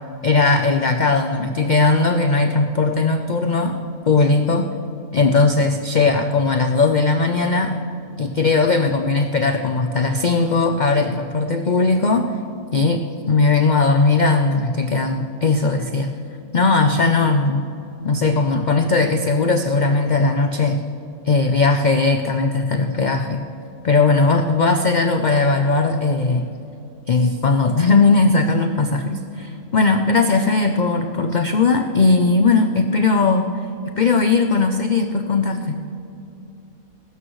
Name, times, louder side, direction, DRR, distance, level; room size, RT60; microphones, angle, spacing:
voice 1, 0.2-3.8 4.1-4.7 5.1-7.7 8.2-12.3 12.7-13.0 13.3-16.1 16.5-17.6 18.0-20.8 21.3-23.4 23.8-26.5 27.1-33.5 33.9-35.8, left 3 dB, 55° left, 6 dB, 0.5 m, -18 dB
21.5 x 12.5 x 3.1 m, 2.7 s
omnidirectional pair, 1.5 m